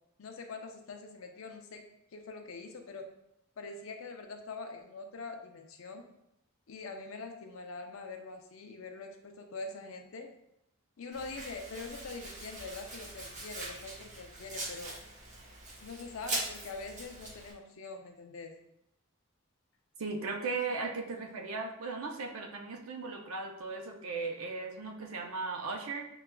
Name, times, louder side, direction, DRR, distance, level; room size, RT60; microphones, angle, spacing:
voice 1, 0.2-1.8 2.1-3.1 3.6-6.1 6.7-10.3 11.0-14.9 15.8-18.6, left 3 dB, 70° left, 4 dB, 0.5 m, -44 dB
Domestic sounds home sounds, 11.1-17.5, right 2 dB, 35° right, 0.7 m, -42 dB
voice 2, 20.0-26.1, right 4 dB, 80° right, 3 dB, 0.6 m, -37 dB
5.7 x 2.3 x 2.2 m, 0.82 s
head